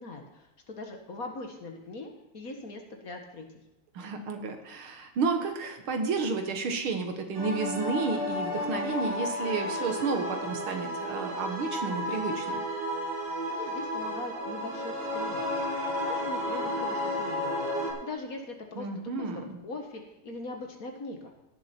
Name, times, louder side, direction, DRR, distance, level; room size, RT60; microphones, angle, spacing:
voice 1, 0.0-3.5 13.5-15.6 16.0-17.7 18.0-18.9 19.1-21.3, left 2 dB, 45° left, 3 dB, 1.7 m, -41 dB
voice 2, 3.9-12.6 18.7-19.6, right 4 dB, 80° right, 5 dB, 2.2 m, -31 dB
sound 1, 7.3-17.9, left 1 dB, 55° right, 2.8 m, -32 dB
17.0 x 7.2 x 4.4 m, 0.97 s
omnidirectional pair, 2.3 m